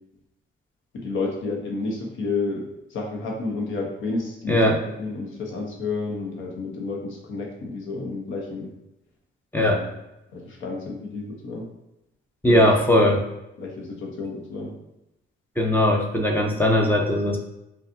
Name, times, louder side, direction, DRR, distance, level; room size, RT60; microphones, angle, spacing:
voice 1, 0.9-8.7 9.6-9.9 10.3-11.7 12.5-12.8 13.6-14.8, left 3 dB, 80° left, 0 dB, 1.0 m, -31 dB
voice 2, 4.5-4.8 9.5-9.8 12.4-13.2 15.6-17.4, left 1 dB, 10° left, 1 dB, 0.7 m, -19 dB
5.1 x 2.5 x 2.7 m, 0.91 s
cardioid pair, 90°, 20 cm